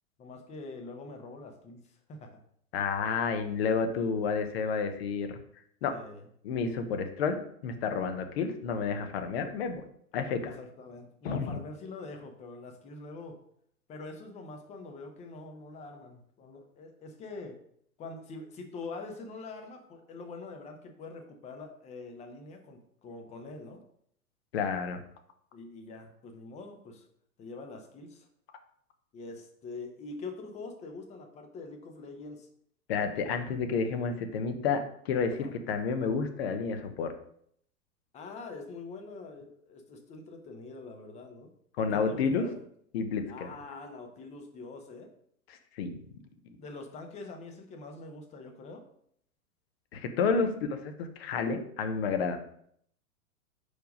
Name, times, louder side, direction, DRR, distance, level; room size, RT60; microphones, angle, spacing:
voice 1, 0.2-2.4 5.9-6.3 10.4-13.4 13.9-17.6 18.0-23.8 25.5-27.1 27.4-28.3 29.1-32.5 35.3-35.5 38.1-41.5 41.9-42.6 43.3-45.1 46.6-48.8 50.4-50.5, left 3 dB, 15° left, 4 dB, 0.7 m, -44 dB
voice 2, 2.7-5.4 5.8-5.9 6.4-9.8 10.1-10.5 11.2-11.6 24.5-25.0 32.9-37.1 41.8-42.4 42.9-43.5 45.8-46.0 49.9-52.4, left 5 dB, 45° left, 7 dB, 0.9 m, -30 dB
4.7 x 4.6 x 5.0 m, 0.67 s
figure-of-eight pair, 100°, 43 cm